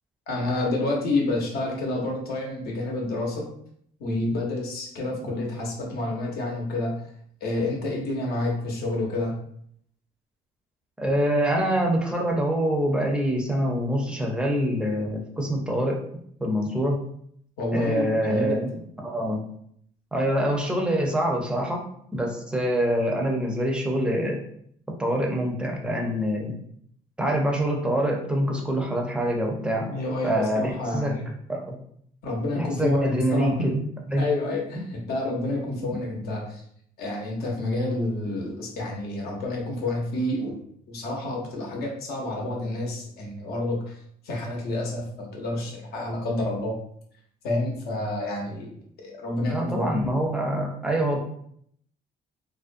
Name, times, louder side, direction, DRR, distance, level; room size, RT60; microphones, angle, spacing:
voice 1, 0.3-3.4 4.0-7.1 7.4-9.4 17.6-18.7 29.8-31.3 32.2-33.7 34.2-36.6 37.0-40.6 40.9-44.0 44.2-46.7 47.4-48.8 49.0-50.0, left 2 dB, 65° left, -1 dB, 0.8 m, -29 dB
voice 2, 11.0-17.0 17.7-18.7 19.0-19.4 20.1-21.8 22.1-24.4 24.9-26.5 27.2-29.9 30.2-31.2 31.5-31.8 32.6-33.8 34.1-34.2 49.5-51.2, equal, 5° right, 0 dB, 0.5 m, -25 dB
2.5 x 2.1 x 2.5 m, 0.67 s
cardioid pair, 110°, 17 cm